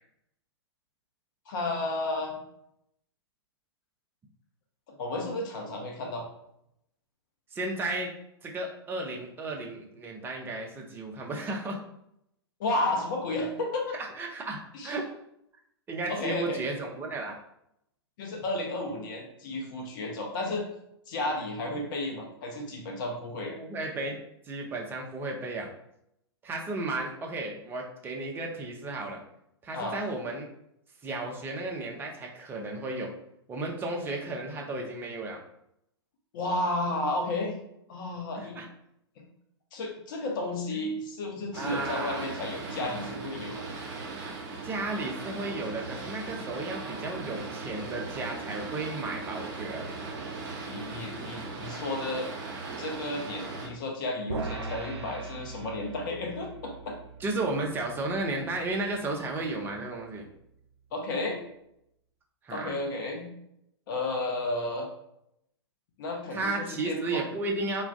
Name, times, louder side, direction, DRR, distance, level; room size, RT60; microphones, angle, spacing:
voice 1, 1.5-2.4 4.9-6.2 12.6-13.8 14.7-14.9 16.1-16.6 18.2-20.6 21.1-23.5 29.7-30.0 36.3-37.5 37.9-38.6 39.7-43.6 50.7-52.3 52.8-57.0 60.9-61.4 62.5-63.3 63.9-64.9 66.0-67.2, left 2 dB, 45° left, 1 dB, 0.8 m, -32 dB
voice 2, 7.5-8.1 8.4-11.8 13.9-15.1 15.9-17.4 23.5-24.2 24.5-25.7 26.4-29.2 29.6-30.5 31.0-33.1 33.5-35.4 38.4-38.7 40.7-40.8 41.6-42.3 44.6-49.9 57.2-60.3 62.4-62.7 66.3-67.8, right 2 dB, 15° right, 1 dB, 0.5 m, -34 dB
Boat Water vehicle, 41.5-53.7, right 3 dB, 45° right, 0.8 m, -38 dB
sound 1, 54.3-60.7, right 4 dB, 75° right, 0.5 m, -42 dB
2.4 x 2.3 x 3.4 m, 0.77 s
figure-of-eight pair, 110°, 14 cm